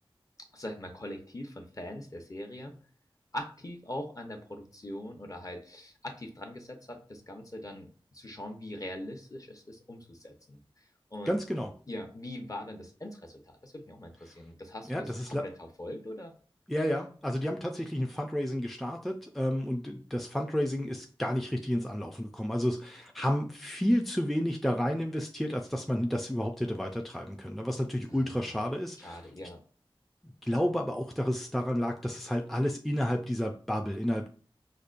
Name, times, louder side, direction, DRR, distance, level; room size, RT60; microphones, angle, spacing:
voice 1, 0.5-2.7 3.3-10.6 11.1-11.3 11.9-15.5 15.8-16.3 28.1-28.3 29.0-29.6, left 1 dB, 40° left, 3 dB, 0.8 m, -42 dB
voice 2, 11.3-11.7 14.8-15.5 16.7-29.2 30.4-34.3, equal, ahead, 2 dB, 0.4 m, -31 dB
5.1 x 2.2 x 2.5 m, 0.42 s
wide cardioid pair, 45°, 9 cm